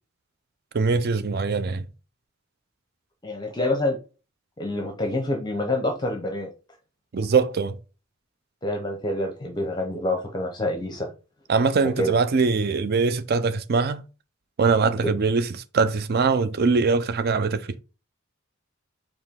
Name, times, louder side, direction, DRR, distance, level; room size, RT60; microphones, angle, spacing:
voice 1, 0.7-1.9 7.1-7.8 11.5-14.0 14.6-15.5 15.7-17.7, right 4 dB, 50° right, 0.4 m, -22 dB
voice 2, 3.2-4.0 4.6-6.5 8.6-11.1 12.0-12.1, left 1 dB, 20° left, 0.6 m, -27 dB
4.8 x 3.0 x 3.6 m
head